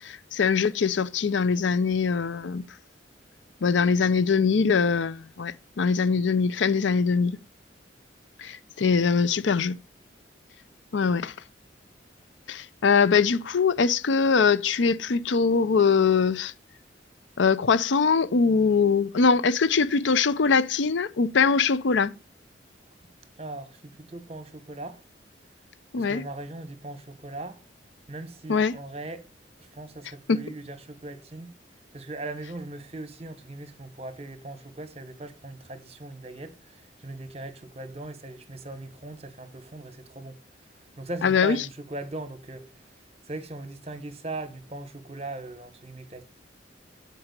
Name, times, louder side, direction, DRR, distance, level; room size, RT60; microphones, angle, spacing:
voice 1, 0.0-2.6 3.6-7.4 8.4-9.8 10.9-11.3 12.5-16.5 17.4-22.1 25.9-26.3 28.5-28.7 30.3-30.4 41.2-41.6, left 5 dB, 85° left, 0.5 m, -22 dB
voice 2, 23.4-25.0 26.0-27.6 28.1-29.3 29.6-31.5 31.9-40.4 41.0-42.7 43.2-46.2, right 2 dB, 35° right, 1.1 m, -39 dB
8.9 x 4.7 x 6.6 m
head